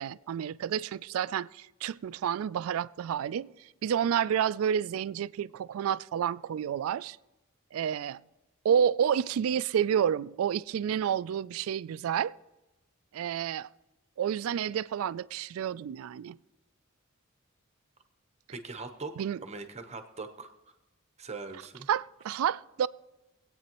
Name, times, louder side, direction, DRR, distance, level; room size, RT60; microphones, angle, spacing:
voice 1, 0.0-3.5 3.8-7.2 7.7-8.2 8.6-12.3 13.1-13.7 14.2-16.4 19.2-19.4 21.9-22.9, right 8 dB, 75° right, 0.3 m, -29 dB
voice 2, 18.5-19.1 19.4-20.5 21.2-21.9, right 3 dB, 30° right, 0.9 m, -41 dB
25.0 x 8.7 x 3.0 m
head